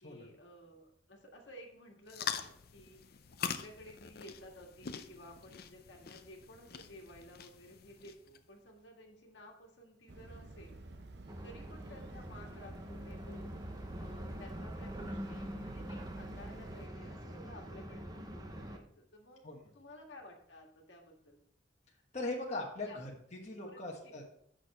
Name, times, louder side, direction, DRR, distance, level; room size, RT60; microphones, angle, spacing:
voice 1, 0.0-10.8 11.4-13.6 14.0-19.4 19.7-21.4 22.8-23.0 23.6-23.8 24.0-24.1, left 1 dB, 75° left, 1 dB, 1.7 m, -54 dB
sound 1, 2.1-8.4, left 7 dB, 55° left, 0.5 m, -44 dB
sound 2, 10.1-16.9, right 2 dB, 60° right, 0.8 m, -51 dB
sound 3, 11.3-18.8, equal, 20° right, 0.8 m, -44 dB
voice 2, 22.1-23.1 23.4-24.3, left 2 dB, 35° left, -2 dB, 1.3 m, -39 dB
8.6 x 6.3 x 4.2 m, 0.68 s
head